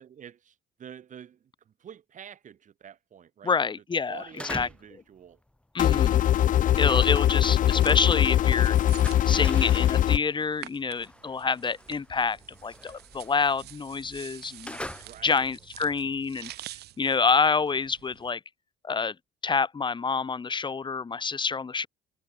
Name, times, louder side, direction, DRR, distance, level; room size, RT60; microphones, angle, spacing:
voice 1, 0.0-1.4 1.8-3.5 4.1-5.4 15.0-15.5, right 9 dB, 50° right, 5.3 m, -47 dB
voice 2, 3.4-4.7 5.7-6.2 6.8-8.8 9.3-14.8 15.2-16.5 17.0-18.4 18.8-19.1 19.4-21.9, left 5 dB, 25° left, 4.6 m, -27 dB
sound 1, 4.1-5.0 5.3-8.2 8.5-15.6, left 1 dB, 5° left, 3.8 m, -43 dB
sound 2, 5.8-10.2, left 11 dB, 50° left, 0.7 m, -22 dB
sound 3, 7.5-18.3, right 15 dB, 75° right, 6.5 m, -48 dB
cardioid pair, 110°, 17 cm